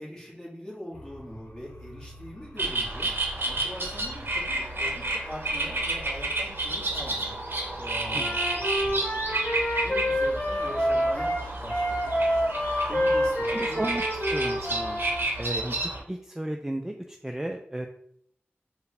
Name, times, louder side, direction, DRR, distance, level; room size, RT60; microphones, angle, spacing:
voice 1, 0.0-3.1 3.4-7.4 7.8-11.3 11.6-12.5 12.9-13.8, equal, 15° left, -5 dB, 1.4 m, -42 dB
sound 1, 0.9-15.6, equal, 85° left, 0.7 m, -46 dB
sound 2, 2.6-16.0, right 2 dB, 60° right, 0.7 m, -31 dB
Wind instrument woodwind instrument, 8.1-15.2, equal, 30° left, 0.9 m, -27 dB
voice 2, 13.5-14.0 14.3-15.0 15.4-15.8 16.1-17.9, right 1 dB, 10° right, 3 dB, 0.3 m, -33 dB
4.5 x 2.1 x 3.4 m, 0.68 s
wide cardioid pair, 60°, 4 cm